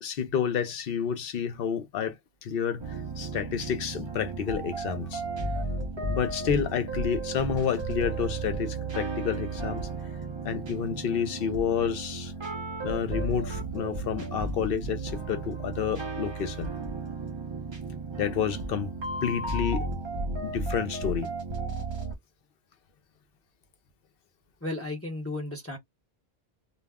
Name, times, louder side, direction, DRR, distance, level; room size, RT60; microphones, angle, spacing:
voice 1, 0.0-2.2 2.4-5.2 6.0-9.9 10.4-12.3 12.8-16.7 18.2-18.9 19.2-19.8 20.4-21.3, left 7 dB, 65° left, 0.8 m, -30 dB
sound 1, 2.8-22.2, right 2 dB, 35° right, 0.4 m, -34 dB
voice 2, 24.6-25.8, left 2 dB, 15° left, 0.6 m, -34 dB
2.3 x 2.0 x 3.4 m
omnidirectional pair, 1.1 m